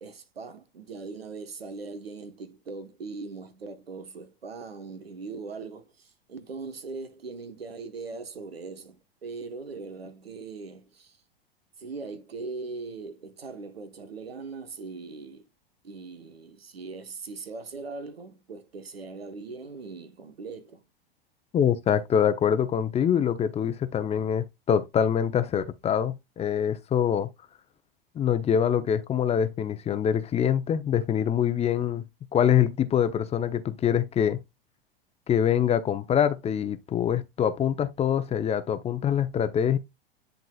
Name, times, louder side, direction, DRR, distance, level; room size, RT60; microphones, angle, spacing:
voice 1, 0.0-11.2 11.8-15.5 15.8-20.8, right 4 dB, 85° right, 1.2 m, -40 dB
voice 2, 21.5-27.3 28.1-32.0 32.3-34.4 35.3-39.8, left 8 dB, 20° left, 0.7 m, -24 dB
10.5 x 3.9 x 2.3 m
hypercardioid pair, 95°, 29 cm